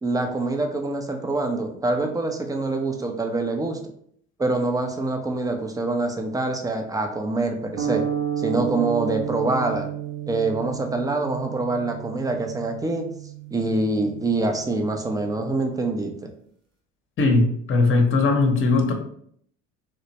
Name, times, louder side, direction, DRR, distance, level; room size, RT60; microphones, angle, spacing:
voice 1, 0.0-3.8 4.4-8.0 8.4-9.9 10.3-13.1 13.5-16.3, right 2 dB, 10° right, 4 dB, 0.5 m, -25 dB
sound 1, 7.8-16.1, right 9 dB, 45° right, 0.9 m, -32 dB
voice 2, 17.2-18.9, left 3 dB, 35° left, 4 dB, 0.9 m, -19 dB
3.3 x 2.8 x 2.8 m, 0.63 s
hypercardioid pair, 65°, 38 cm